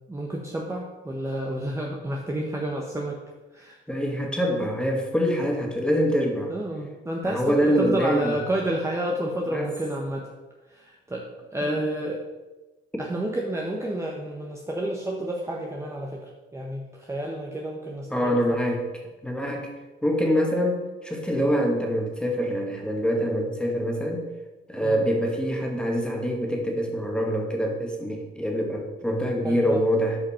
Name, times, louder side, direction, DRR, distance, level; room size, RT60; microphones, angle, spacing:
voice 1, 0.1-3.2 3.5-3.8 6.5-10.3 10.7-11.2 11.5-12.2 13.0-18.4 24.8-25.0 29.4-29.8, right 1 dB, 15° right, -1 dB, 1.2 m, -30 dB
voice 2, 3.9-6.5 7.2-8.4 9.5-9.7 11.7-11.8 18.1-19.7 20.0-24.2 24.7-30.2, equal, 5° left, 0 dB, 2.1 m, -25 dB
12.0 x 5.2 x 4.5 m, 1.2 s
cardioid pair, 90°, 20 cm